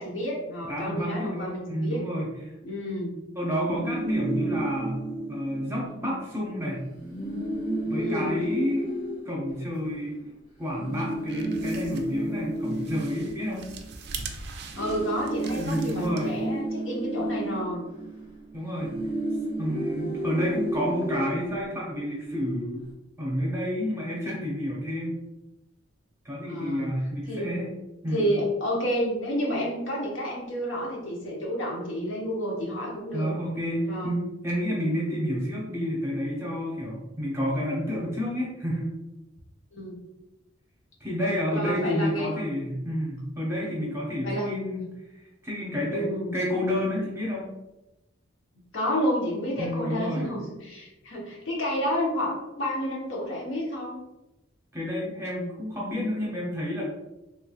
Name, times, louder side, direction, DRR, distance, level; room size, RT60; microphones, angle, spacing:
voice 1, 0.0-2.0 2.6-3.1 7.9-8.4 14.8-17.8 26.4-26.9 27.3-27.5 28.1-33.3 33.9-34.1 39.7-40.0 41.5-42.5 43.7-43.8 44.2-44.9 45.9-46.4 48.7-54.0, equal, 75° left, -3 dB, 1.0 m, -30 dB
voice 2, 0.7-2.5 3.4-5.0 5.3-6.9 7.8-8.9 9.3-10.2 10.6-13.7 15.6-16.3 18.5-19.0 19.6-22.8 23.2-25.2 26.2-27.7 28.0-28.3 33.1-38.9 41.0-44.8 45.4-47.5 49.6-50.3 54.7-56.8, equal, 15° right, -4 dB, 0.7 m, -30 dB
sound 1, 3.5-6.1 6.4-6.5 6.8-10.2 10.7-14.3 14.6-22.2, right 1 dB, 35° left, 1.4 m, -32 dB
sound 2, 11.0-16.6, right 5 dB, 55° right, 0.4 m, -42 dB
3.3 x 3.2 x 2.3 m, 0.99 s
head